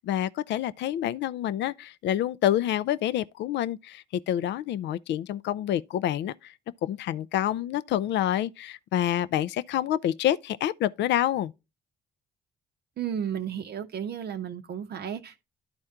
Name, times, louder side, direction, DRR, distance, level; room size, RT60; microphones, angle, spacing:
voice 1, 0.0-6.3 6.8-11.5, left 12 dB, 60° left, 0.4 m, -27 dB
voice 2, 13.0-15.4, right 8 dB, 50° right, 0.6 m, -33 dB
11.0 x 4.3 x 3.6 m
hypercardioid pair, 45°, 21 cm